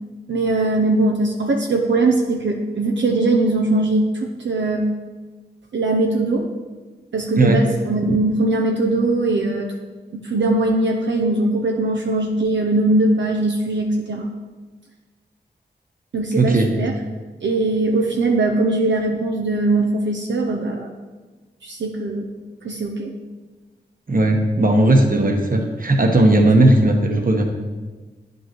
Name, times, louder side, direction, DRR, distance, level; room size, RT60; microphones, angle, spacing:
voice 1, 0.3-4.9 5.7-6.5 7.1-9.7 10.1-14.3 16.1-16.9 17.4-20.9 21.6-22.2 22.6-23.1, right 2 dB, 80° right, 1 dB, 0.6 m, -20 dB
voice 2, 16.3-16.7 24.1-27.4, right 1 dB, 50° right, 2 dB, 1.1 m, -16 dB
9.5 x 5.4 x 3.0 m, 1.3 s
cardioid pair, 45°, 19 cm